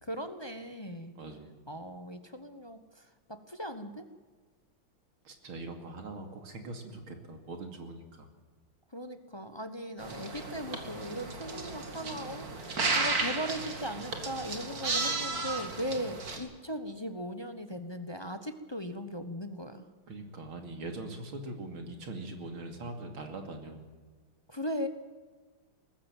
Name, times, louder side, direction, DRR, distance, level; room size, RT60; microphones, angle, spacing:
voice 1, 0.0-1.1 1.7-2.8 3.3-4.0 8.9-19.9 24.5-24.9, equal, 20° left, 10 dB, 0.7 m, -38 dB
voice 2, 1.1-1.5 5.2-8.3 20.1-23.8, right 2 dB, 80° right, 5 dB, 3.3 m, -42 dB
sound 1, 10.0-16.4, right 3 dB, 45° right, 2.7 m, -34 dB
19.5 x 15.0 x 9.0 m, 1.4 s
omnidirectional pair, 2.3 m